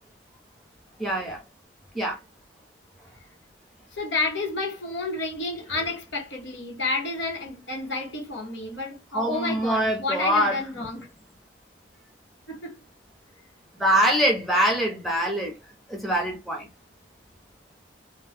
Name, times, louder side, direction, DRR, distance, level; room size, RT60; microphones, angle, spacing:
voice 1, 1.0-1.4 1.9-2.2 9.1-10.6 13.8-15.6 15.9-16.7, equal, ahead, 0.7 m, -24 dB
voice 2, 3.9-11.1 12.5-12.7, left 3 dB, 75° left, 1.2 m, -30 dB
2.6 x 2.2 x 3.4 m
head